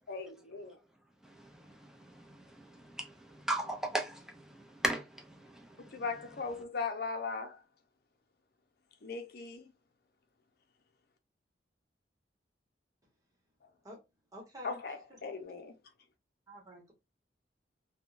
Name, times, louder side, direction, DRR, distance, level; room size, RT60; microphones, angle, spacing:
voice 1, 0.1-0.8 5.8-7.6 9.0-9.7 14.6-15.7, left 4 dB, 60° left, 0.6 m, -38 dB
voice 2, 1.2-6.1, right 1 dB, 5° right, 0.6 m, -38 dB
voice 3, 14.3-14.8 16.5-16.9, equal, 20° right, 1.2 m, -48 dB
3.5 x 2.2 x 2.5 m
head